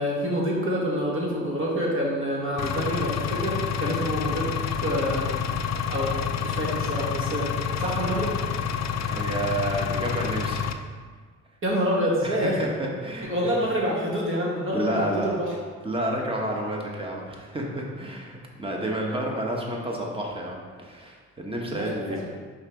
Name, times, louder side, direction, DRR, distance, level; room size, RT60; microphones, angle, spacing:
voice 1, 0.0-4.5 4.8-5.3 5.9-7.5 7.8-8.3 11.6-12.6 13.2-15.5 21.6-22.4, equal, 45° right, -4 dB, 1.8 m, -27 dB
Engine, 2.6-10.7, left 7 dB, 60° left, 0.5 m, -28 dB
voice 2, 9.1-10.8 12.2-13.3 14.7-15.3 15.8-22.2, right 1 dB, 20° right, -1 dB, 1.3 m, -30 dB
5.7 x 4.0 x 4.6 m, 1.5 s
cardioid pair, 90°, 30 cm